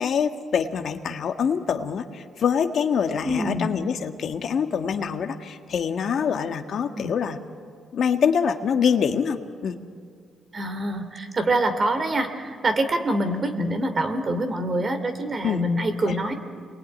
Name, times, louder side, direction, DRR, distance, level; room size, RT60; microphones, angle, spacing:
voice 1, 0.0-7.4 7.9-9.8 15.4-15.6 16.1-16.2, left 7 dB, 60° left, 6 dB, 1.6 m, -25 dB
voice 2, 3.2-3.7 6.9-7.1 10.5-16.3, right 1 dB, 35° right, 8 dB, 2.9 m, -25 dB
28.0 x 21.5 x 9.9 m, 2.2 s
cardioid pair, 90°, 0 cm